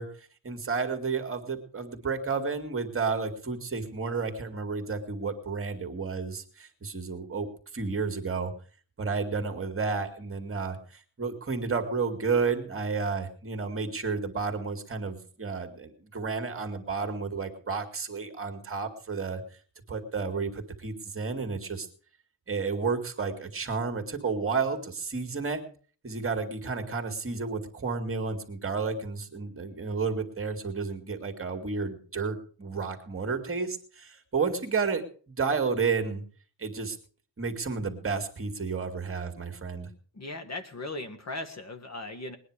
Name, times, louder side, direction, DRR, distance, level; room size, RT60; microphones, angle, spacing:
voice 1, 0.0-7.5 7.7-8.5 9.0-19.4 19.9-21.9 22.5-25.6 26.0-36.2 36.6-37.0 37.4-39.9, right 4 dB, 30° right, 6 dB, 2.3 m, -31 dB
voice 2, 40.1-42.4, left 2 dB, 35° left, 8 dB, 1.6 m, -38 dB
20.5 x 9.9 x 4.9 m, 0.43 s
cardioid pair, 125°, 44 cm